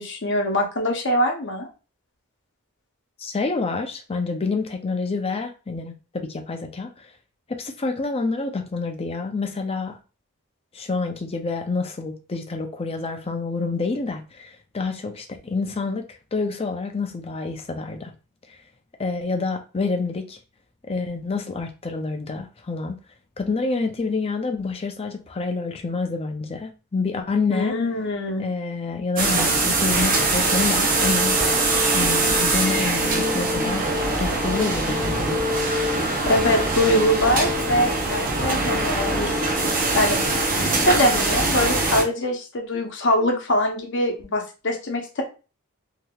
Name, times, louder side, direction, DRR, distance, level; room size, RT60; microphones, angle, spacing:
voice 1, 0.0-1.7 27.5-28.4 36.3-40.2 40.6-45.2, left 1 dB, 55° left, 0.8 m, -23 dB
voice 2, 3.2-6.9 7.5-10.0 10.7-16.0 16.3-18.1 18.5-18.6 19.0-20.4 20.9-23.0 23.4-27.7 28.4-31.6 31.9-33.9 34.2-35.4, left 4 dB, 25° left, 0.4 m, -28 dB
sound 1, 29.2-42.0, right 2 dB, 40° right, 0.6 m, -22 dB
3.5 x 2.8 x 2.3 m
head